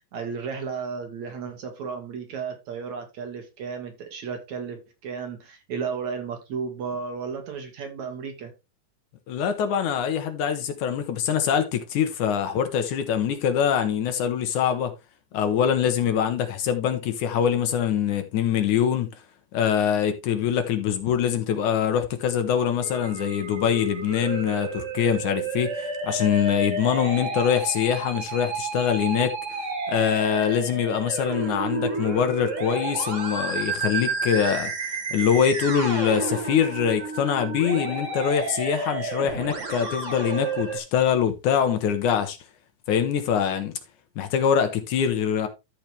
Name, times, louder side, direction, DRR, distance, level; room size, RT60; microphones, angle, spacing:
voice 1, 0.1-8.5, right 6 dB, 60° right, 2.9 m, -33 dB
voice 2, 9.3-14.9 15.3-19.1 19.5-29.6 29.9-34.7 35.1-42.4 42.9-43.7 44.2-45.5, left 8 dB, 70° left, 2.3 m, -24 dB
Musical instrument, 22.8-40.8, right 3 dB, 40° right, 1.0 m, -31 dB
13.5 x 5.0 x 3.3 m
omnidirectional pair, 3.9 m